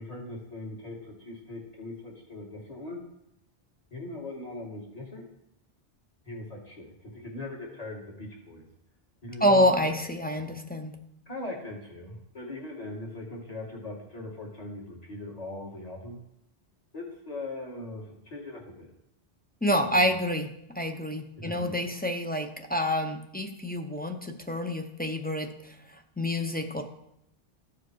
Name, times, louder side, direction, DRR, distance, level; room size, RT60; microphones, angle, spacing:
voice 1, 0.0-3.0 3.9-5.3 6.2-8.7 9.2-9.6 11.3-16.2 16.9-18.9 19.7-20.1 21.4-21.8, left 2 dB, 35° left, -2 dB, 2.3 m, -40 dB
voice 2, 9.4-11.0 19.6-20.5 20.8-25.5 26.2-26.8, equal, 10° left, 4 dB, 0.5 m, -27 dB
14.0 x 4.9 x 4.6 m, 0.79 s
omnidirectional pair, 1.1 m